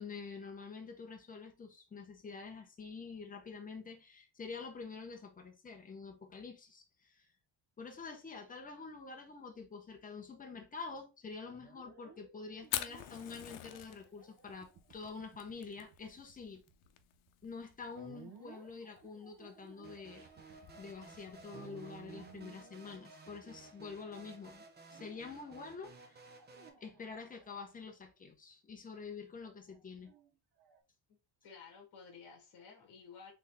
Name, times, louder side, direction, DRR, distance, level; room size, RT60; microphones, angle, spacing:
voice 1, 0.0-7.3 7.8-16.6 17.4-20.3 20.8-26.2 26.8-30.1, left 4 dB, 20° left, 0.7 m, -47 dB
sound 1, 11.5-24.1 24.9-25.5 26.4-27.9 29.4-30.8, right 7 dB, 50° right, 1.0 m, -58 dB
Fire, 12.6-22.4, left 12 dB, 85° left, 0.7 m, -47 dB
sound 2, 19.8-26.7, right 4 dB, 20° right, 0.5 m, -56 dB
voice 2, 31.4-33.3, left 5 dB, 55° left, 1.5 m, -53 dB
4.0 x 3.3 x 3.4 m
cardioid pair, 175°, 48 cm